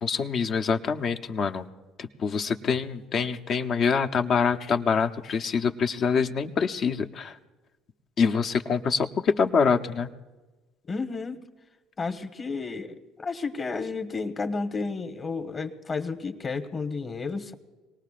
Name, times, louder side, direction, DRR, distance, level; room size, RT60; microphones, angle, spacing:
voice 1, 0.0-1.6 2.0-7.4 8.2-10.1, left 5 dB, 50° left, 7 dB, 0.9 m, -25 dB
voice 2, 10.9-11.4 12.0-17.5, left 4 dB, 35° left, 7 dB, 1.4 m, -32 dB
25.5 x 19.0 x 2.5 m, 1.2 s
hypercardioid pair, 65°, 0 cm